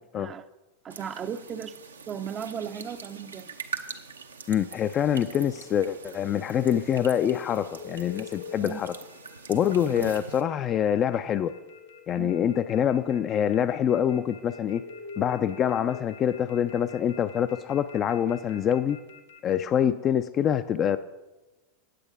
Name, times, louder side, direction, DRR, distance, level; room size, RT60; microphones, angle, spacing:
voice 1, 0.8-1.8 2.1-3.5 8.6-8.8 12.2-12.4 19.9-20.0, right 8 dB, 30° right, 0.5 m, -36 dB
sound 1, 0.9-10.4, right 5 dB, 85° right, 0.8 m, -43 dB
voice 2, 4.5-8.9 9.5-11.5 12.1-14.8 15.2-19.0 19.4-21.0, left 9 dB, 35° left, 0.4 m, -25 dB
sound 2, 5.2-19.6, left 6 dB, 75° left, 1.1 m, -47 dB
9.2 x 7.9 x 5.4 m
figure-of-eight pair, 90°, 0 cm